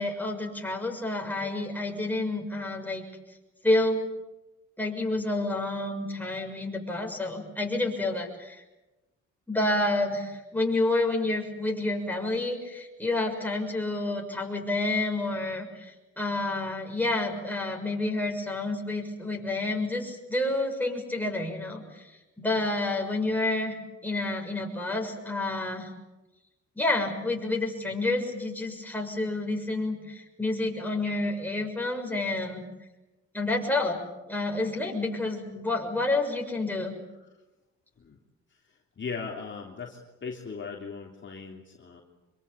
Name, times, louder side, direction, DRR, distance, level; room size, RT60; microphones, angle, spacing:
voice 1, 0.0-3.0 3.6-4.0 4.8-8.6 9.5-22.0 22.4-23.8 24.0-25.9 26.7-32.6 33.3-36.9, left 2 dB, 5° left, 1 dB, 6.8 m, -29 dB
voice 2, 39.0-42.0, left 5 dB, 40° left, 0 dB, 3.3 m, -38 dB
25.0 x 23.5 x 8.8 m, 1.1 s
cardioid pair, 90°, 30 cm